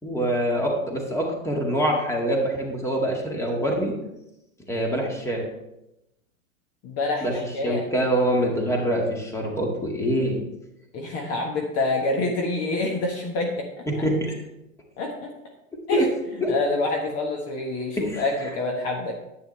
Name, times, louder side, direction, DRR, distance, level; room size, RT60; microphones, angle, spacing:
voice 1, 0.0-3.9 4.7-5.5 7.2-10.4 13.9-14.3 15.9-16.0 16.4-16.5 18.0-18.2, equal, 5° left, 0 dB, 2.1 m, -25 dB
voice 2, 6.8-7.9 10.9-13.7 15.0-15.3 15.9-16.1 16.5-19.1, left 2 dB, 35° left, 1 dB, 1.4 m, -27 dB
10.5 x 9.1 x 3.3 m, 0.90 s
hypercardioid pair, 105°, 41 cm